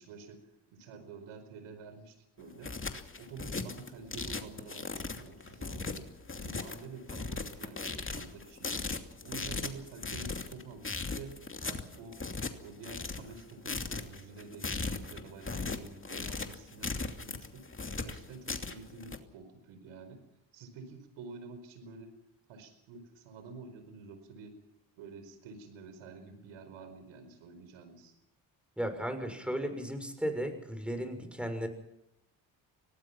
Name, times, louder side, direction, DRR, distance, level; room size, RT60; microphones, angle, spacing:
voice 1, 0.0-2.7 3.2-8.8 9.2-12.3 12.6-17.6 18.0-20.2 20.5-22.1 22.5-24.6 25.0-28.1, right 4 dB, 80° right, 9 dB, 5.0 m, -49 dB
sound 1, 2.4-19.2, left 3 dB, 25° left, 2.7 m, -38 dB
voice 2, 28.8-31.7, equal, ahead, 7 dB, 6.4 m, -35 dB
25.5 x 18.5 x 5.9 m, 0.87 s
supercardioid pair, 60°, 49 cm